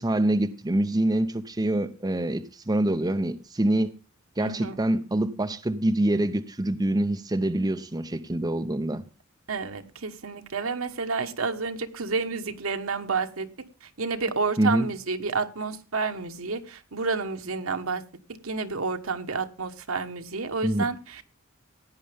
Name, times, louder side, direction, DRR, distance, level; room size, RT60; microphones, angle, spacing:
voice 1, 0.0-3.9 4.4-9.0 14.6-14.9 20.6-20.9, right 1 dB, 20° right, 0.7 m, -25 dB
voice 2, 4.4-4.8 9.5-13.5 14.0-18.0 18.4-21.2, right 4 dB, 80° right, 1.2 m, -30 dB
16.5 x 9.9 x 3.4 m
head